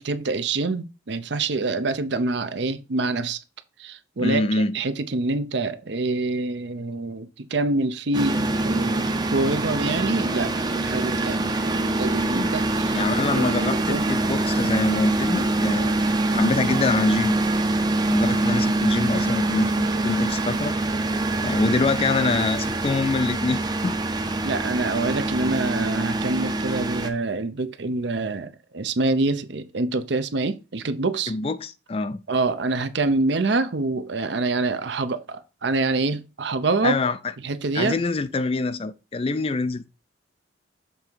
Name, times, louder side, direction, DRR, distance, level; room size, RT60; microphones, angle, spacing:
voice 1, 0.0-3.4 3.8-13.0 13.3-14.2 16.3-16.5 24.4-31.3 32.3-37.0 37.4-38.0, right 3 dB, 65° right, 0.6 m, -26 dB
voice 2, 4.2-4.8 12.4-12.5 12.9-16.0 16.3-17.4 18.1-20.7 21.4-24.0 31.3-32.2 36.8-37.2 37.7-39.9, left 3 dB, 30° left, 0.4 m, -25 dB
sound 1, 8.1-27.1, right 2 dB, 20° right, 0.6 m, -24 dB
6.9 x 3.5 x 4.5 m
head